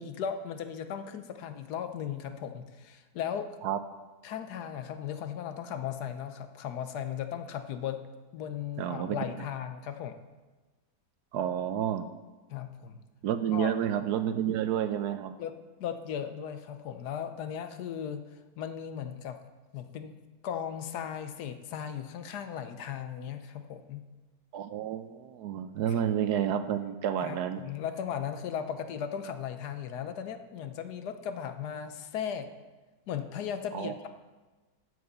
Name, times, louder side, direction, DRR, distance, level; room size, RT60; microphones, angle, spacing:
voice 1, 0.0-3.5 4.2-8.0 8.3-10.2 12.5-13.0 13.5-13.8 15.4-15.5 15.8-18.2 18.6-19.4 19.7-20.1 20.4-24.0 27.2-32.5 33.1-34.1, left 8 dB, 70° left, 9 dB, 1.2 m, -37 dB
voice 2, 8.8-9.2 11.3-12.1 13.2-15.3 24.5-27.6 33.7-33.9, right 9 dB, 75° right, 10 dB, 1.1 m, -30 dB
7.9 x 7.9 x 6.7 m, 1.2 s
omnidirectional pair, 1.8 m